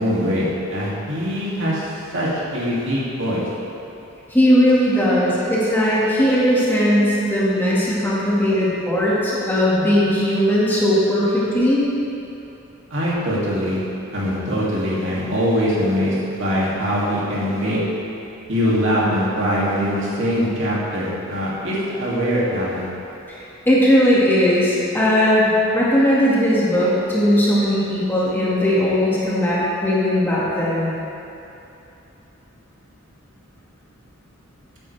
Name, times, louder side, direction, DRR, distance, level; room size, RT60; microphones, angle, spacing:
voice 1, 0.0-3.5 12.9-13.8 14.1-17.8 18.5-22.9, equal, 60° right, -7 dB, 2.6 m, -22 dB
voice 2, 4.3-11.8 23.7-30.9, equal, 10° left, -8 dB, 1.9 m, -18 dB
15.5 x 9.2 x 3.4 m, 2.9 s
head